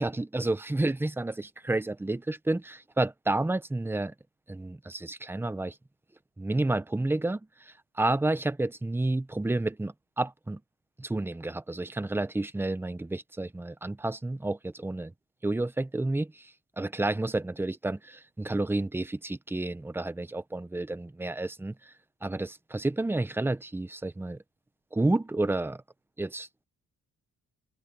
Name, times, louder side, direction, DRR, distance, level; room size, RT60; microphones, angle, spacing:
voice 1, 0.0-4.1 4.5-5.7 6.4-7.4 7.7-10.6 11.0-15.1 15.4-16.5 16.8-21.7 22.2-24.4 24.9-25.8 26.2-26.5, right 2 dB, 5° right, 0.7 m, -30 dB
open air
cardioid pair, 145°, 31 cm